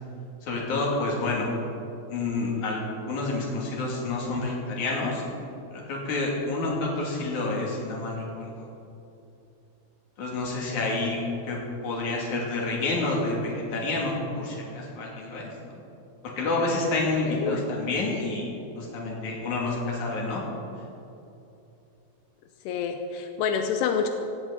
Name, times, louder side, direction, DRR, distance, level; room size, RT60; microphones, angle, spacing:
voice 1, 0.4-1.5 2.1-5.2 5.7-8.5 10.2-11.2 11.5-15.8 16.4-18.5 18.8-20.4, left 2 dB, 50° left, -3 dB, 4.0 m, -29 dB
voice 2, 17.3-17.6 22.7-24.1, left 6 dB, 85° left, 5 dB, 2.9 m, -27 dB
17.5 x 16.5 x 4.2 m, 2.8 s
omnidirectional pair, 4.6 m